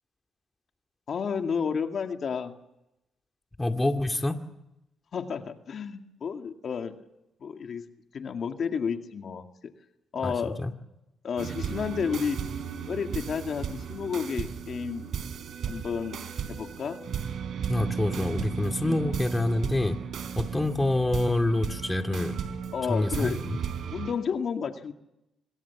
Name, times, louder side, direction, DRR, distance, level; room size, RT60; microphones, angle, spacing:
voice 1, 1.1-2.5 5.1-6.9 7.4-7.8 8.1-9.5 10.1-10.6 11.2-12.4 12.9-15.1 15.7-16.2 16.5-17.0 18.8-19.1 22.7-23.4 23.9-24.9, left 6 dB, 55° left, 5 dB, 2.2 m, -31 dB
voice 2, 3.6-4.3 10.2-10.3 10.6-10.7 17.7-20.0 20.4-22.4 22.9-23.6, left 2 dB, 15° left, 5 dB, 2.2 m, -26 dB
sound 1, 11.4-24.1, right 7 dB, 65° right, 3.5 m, -35 dB
26.0 x 23.0 x 7.2 m, 0.88 s
cardioid pair, 90°, 0 cm